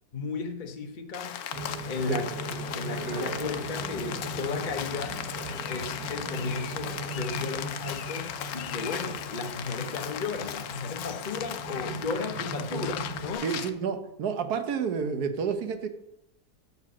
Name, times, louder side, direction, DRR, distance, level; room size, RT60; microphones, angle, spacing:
voice 1, 0.1-1.4 1.9-5.2 5.7-13.5, left 4 dB, 40° left, 4 dB, 0.8 m, -35 dB
Rain, 1.1-13.7, left 9 dB, 70° left, 1.1 m, -37 dB
sound 1, 1.5-13.3, right 1 dB, 85° right, 2.0 m, -38 dB
voice 2, 13.4-15.9, right 6 dB, 70° right, 8 dB, 1.4 m, -30 dB
8.2 x 6.8 x 6.1 m, 0.86 s
omnidirectional pair, 1.8 m